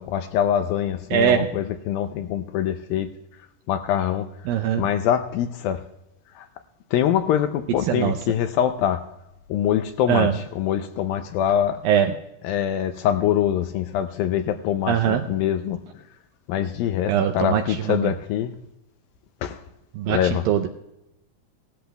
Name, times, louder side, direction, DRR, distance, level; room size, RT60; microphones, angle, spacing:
voice 1, 0.0-3.1 3.7-4.3 4.8-5.9 6.4-6.5 6.9-9.1 9.5-11.9 12.4-15.8 16.5-18.6 19.4-19.6 20.1-20.4, left 10 dB, 80° left, 2.2 m, -24 dB
voice 2, 1.1-1.5 4.5-4.8 7.8-8.2 10.1-10.3 11.8-12.1 14.9-15.3 17.1-18.1 19.9-20.7, right 9 dB, 80° right, 2.1 m, -21 dB
18.0 x 13.5 x 2.3 m
omnidirectional pair, 4.6 m